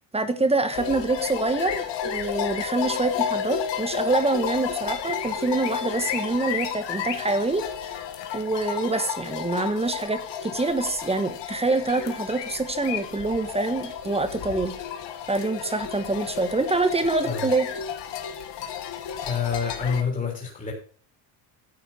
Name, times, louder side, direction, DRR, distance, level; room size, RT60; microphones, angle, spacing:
voice 1, 0.1-7.6 8.3-14.7 15.3-17.7, right 3 dB, 10° right, 9 dB, 1.3 m, -26 dB
sound 1, 0.7-20.0, left 8 dB, 60° left, 2.1 m, -32 dB
voice 2, 19.2-20.7, left 6 dB, 15° left, -1 dB, 3.5 m, -27 dB
10.5 x 7.7 x 5.7 m, 0.41 s
cardioid pair, 130°, 48 cm